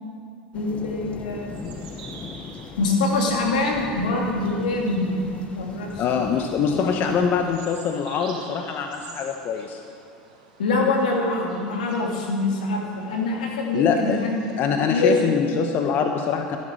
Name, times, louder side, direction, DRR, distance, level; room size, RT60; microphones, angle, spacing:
voice 1, 0.5-1.6 2.8-6.3 6.7-6.9 10.6-14.4 14.9-15.3, left 2 dB, 80° left, 0 dB, 2.6 m, -24 dB
sound 1, 0.5-7.6, left 4 dB, 30° left, 1.1 m, -40 dB
sound 2, 1.5-14.7, right 4 dB, 80° right, 3.3 m, -47 dB
voice 2, 6.0-9.8 13.7-14.2 14.6-16.6, left 6 dB, 50° left, 5 dB, 1.0 m, -23 dB
14.0 x 11.0 x 6.4 m, 2.4 s
hypercardioid pair, 85°, 4 cm